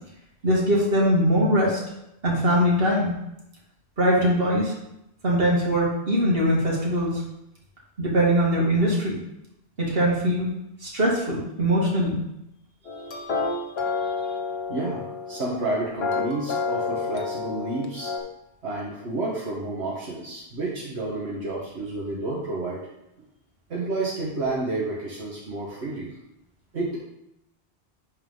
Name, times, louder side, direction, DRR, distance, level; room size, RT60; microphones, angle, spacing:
voice 1, 0.4-1.8 2.2-3.1 4.0-4.7 5.2-7.2 8.0-9.2 9.8-10.5 10.8-12.2, equal, 60° right, -4 dB, 2.3 m, -21 dB
voice 2, 12.8-14.4 14.7-18.1 18.6-22.8 23.2-23.3 23.7-26.1 26.7-27.0, right 2 dB, 80° right, -6 dB, 1.7 m, -31 dB
sound 1, 12.9-18.2, left 4 dB, 70° left, 1.3 m, -29 dB
11.0 x 4.4 x 3.9 m, 0.85 s
omnidirectional pair, 1.1 m